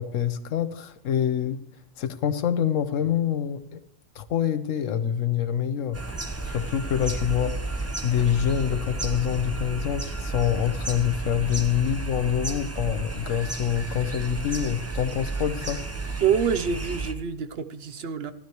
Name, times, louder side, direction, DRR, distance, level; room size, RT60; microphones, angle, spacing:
voice 1, 0.0-1.6 2.0-3.8 4.1-6.0 6.4-15.9, left 9 dB, 85° left, 1.2 m, -26 dB
sound 1, 5.9-17.1, right 3 dB, 15° right, 0.7 m, -32 dB
voice 2, 16.2-18.3, right 7 dB, 60° right, 0.9 m, -26 dB
16.0 x 11.5 x 3.0 m
omnidirectional pair, 1.3 m